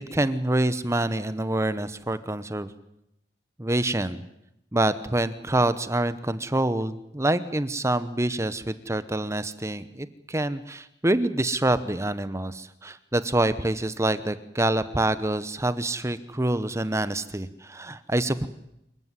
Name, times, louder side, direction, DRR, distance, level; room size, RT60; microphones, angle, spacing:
voice 1, 0.1-2.7 3.6-4.2 4.7-18.5, right 1 dB, 15° right, 13 dB, 0.9 m, -26 dB
26.5 x 15.0 x 9.9 m, 0.80 s
head